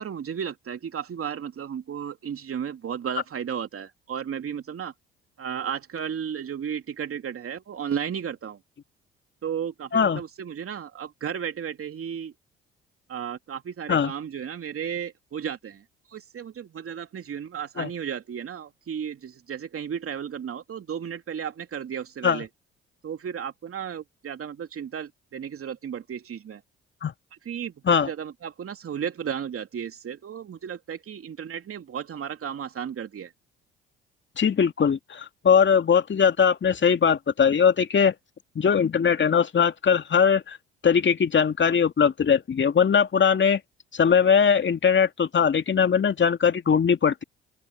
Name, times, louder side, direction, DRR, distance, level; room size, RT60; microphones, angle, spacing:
voice 1, 0.0-4.9 5.4-8.6 9.4-12.3 13.1-15.8 16.1-22.5 23.0-26.6 27.3-33.3, right 8 dB, 50° right, 3.0 m, -34 dB
voice 2, 34.4-38.1 38.6-40.6 40.8-43.6 43.9-47.2, left 7 dB, 40° left, 2.4 m, -20 dB
open air
hypercardioid pair, 50°, 29 cm